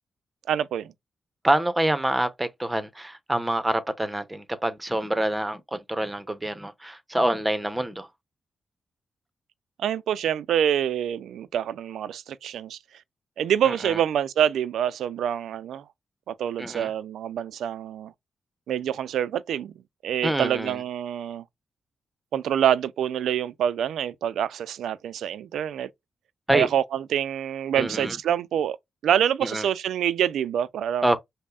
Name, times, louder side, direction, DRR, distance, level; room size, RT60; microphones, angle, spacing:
voice 1, 0.5-0.9 9.8-12.8 13.4-15.8 16.3-18.1 18.7-19.7 20.0-21.4 22.3-25.9 26.5-28.8 29.0-31.1, right 9 dB, 85° right, 0.3 m, -26 dB
voice 2, 1.4-8.1 13.6-14.0 16.6-16.9 20.2-20.8 26.5-26.7 27.8-28.2 29.4-29.7 31.0-31.2, right 1 dB, 15° right, 0.7 m, -26 dB
5.3 x 2.1 x 2.4 m
cardioid pair, 60°, 0 cm